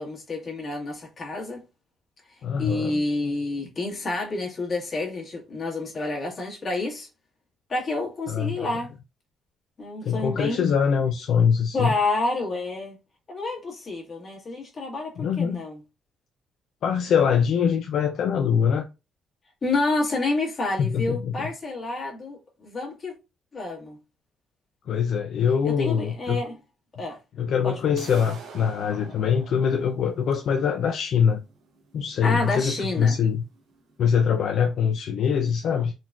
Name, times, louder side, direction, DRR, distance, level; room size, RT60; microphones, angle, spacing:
voice 1, 0.0-1.6 2.6-7.1 7.7-8.9 9.8-10.6 11.7-13.0 13.3-15.8 19.6-23.1 23.5-24.0 25.6-26.6 27.0-27.2 27.6-27.8 32.2-33.2, left 2 dB, 40° left, 1.4 m, -29 dB
voice 2, 2.4-3.0 8.3-8.7 10.0-11.9 15.2-15.6 16.8-18.9 20.8-21.5 24.9-26.4 27.4-31.4 31.9-33.4 34.0-35.9, left 7 dB, 70° left, 0.3 m, -23 dB
sound 1, 28.0-33.9, right 5 dB, 85° right, 1.0 m, -47 dB
3.7 x 2.2 x 2.3 m
cardioid pair, 90°, 0 cm